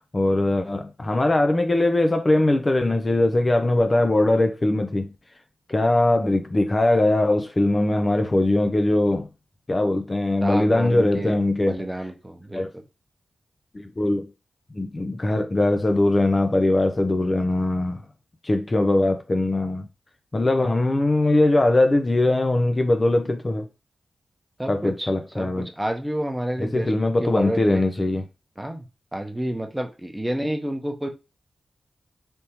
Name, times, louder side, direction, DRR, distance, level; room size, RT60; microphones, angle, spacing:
voice 1, 0.1-5.1 5.7-9.3 9.7-11.9 12.5-12.7 13.7-14.3 14.7-18.0 18.4-19.9 20.3-23.7 24.7-25.7 26.6-28.2, left 2 dB, 35° left, 0.4 m, -21 dB
voice 2, 10.4-11.3 11.7-12.8 24.6-26.9 27.2-27.8 28.6-28.8 29.1-31.1, right 1 dB, 10° right, 0.7 m, -29 dB
3.4 x 2.7 x 2.9 m
cardioid pair, 45°, 0 cm